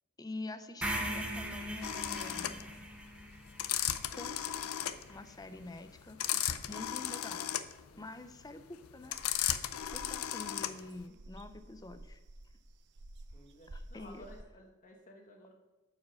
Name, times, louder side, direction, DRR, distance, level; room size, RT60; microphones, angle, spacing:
voice 1, 0.2-2.6 4.2-4.6 5.1-6.2 6.7-7.5 8.0-9.2 9.9-12.2 13.7-14.3, left 2 dB, 15° left, 10 dB, 0.5 m, -46 dB
sound 1, 0.8-4.9, right 1 dB, 5° right, 0.9 m, -40 dB
sound 2, 1.8-11.0, left 11 dB, 70° left, 0.5 m, -35 dB
sound 3, 9.1-14.4, right 1 dB, 55° right, 0.7 m, -52 dB
voice 2, 13.3-15.5, left 1 dB, 40° left, 2 dB, 1.2 m, -55 dB
9.4 x 4.8 x 6.4 m, 1.1 s
head